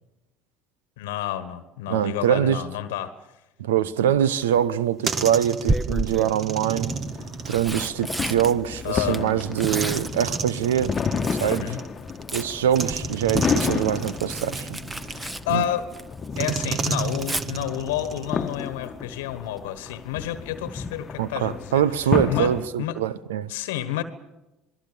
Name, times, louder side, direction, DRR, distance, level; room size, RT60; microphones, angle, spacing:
voice 1, 1.0-3.2 3.8-3.9 8.8-9.3 11.4-11.8 15.2-15.9 16.4-21.8 22.3-22.5 22.8-23.0 23.5-24.0, left 12 dB, 75° left, 1.3 m, -30 dB
voice 2, 1.9-2.6 3.6-7.0 7.5-10.9 11.4-11.7 12.3-14.8 15.5-15.6 21.2-23.5, right 10 dB, 80° right, 0.8 m, -24 dB
Tearing, 4.2-4.6 5.6-6.4 7.2-11.7 12.0-16.3 16.6-17.4 19.3-19.6 19.9-20.0, right 2 dB, 15° right, 1.4 m, -32 dB
sound 1, 4.7-8.6 9.6-12.2 12.7-15.6 16.3-18.8, right 5 dB, 45° right, 1.8 m, -33 dB
sound 2, 6.9-22.7, left 5 dB, 35° left, 1.2 m, -32 dB
27.5 x 20.0 x 6.9 m
hypercardioid pair, 65°, 0 cm